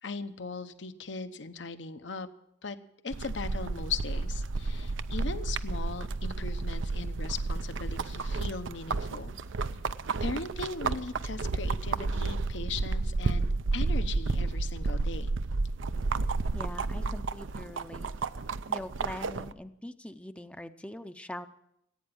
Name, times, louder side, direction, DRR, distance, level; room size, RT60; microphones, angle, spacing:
voice 1, 0.0-2.3 2.6-2.8 3.0-9.3 10.2-15.3, left 4 dB, 70° left, 10 dB, 1.0 m, -38 dB
sound 1, 3.1-19.5, right 3 dB, 90° right, 0.6 m, -31 dB
voice 2, 16.5-18.1 18.7-21.5, left 1 dB, 5° left, 9 dB, 0.5 m, -42 dB
15.5 x 9.0 x 8.6 m, 0.78 s
head